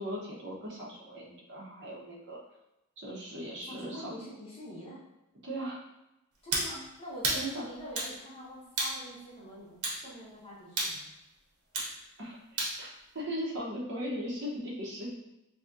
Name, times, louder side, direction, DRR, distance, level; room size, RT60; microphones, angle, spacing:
voice 1, 0.0-2.4 3.0-4.1 5.4-5.8 7.3-7.6 12.2-12.9 13.1-15.1, equal, 55° right, -4 dB, 0.9 m, -38 dB
voice 2, 3.6-5.0 6.4-9.8 10.0-11.1, equal, 25° left, -9 dB, 1.4 m, -45 dB
sound 1, 6.5-6.7 7.2-7.4 8.0-8.1 8.8-9.0 9.8-10.0 10.8-11.0 11.7-11.9 12.6-12.8, right 2 dB, 80° right, 0.9 m, -30 dB
4.0 x 2.8 x 2.5 m, 0.93 s
head